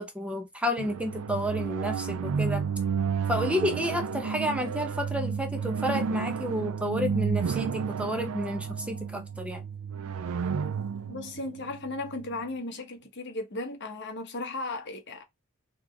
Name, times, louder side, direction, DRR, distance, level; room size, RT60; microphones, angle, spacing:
voice 1, 0.0-2.6 3.3-9.6, equal, 5° right, 0.8 m, -31 dB
sound 1, 0.8-12.4, right 6 dB, 85° right, 0.4 m, -31 dB
voice 2, 11.1-15.2, left 2 dB, 55° left, 1.2 m, -36 dB
3.6 x 3.2 x 3.5 m
head